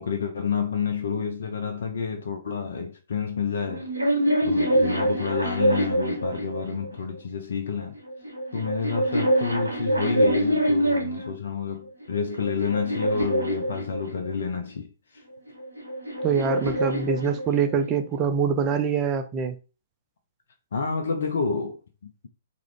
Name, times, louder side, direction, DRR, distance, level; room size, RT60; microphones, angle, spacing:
voice 1, 0.0-3.9 4.4-8.0 8.5-14.9 15.1-15.2 20.7-22.3, left 5 dB, 65° left, 0.4 m, -29 dB
sound 1, 3.6-7.0 7.9-11.3 12.0-14.4 15.5-17.9, right 1 dB, 90° right, 0.8 m, -25 dB
voice 2, 16.2-19.6, right 6 dB, 25° right, 0.3 m, -24 dB
2.4 x 2.1 x 3.1 m
figure-of-eight pair, 120°, 0 cm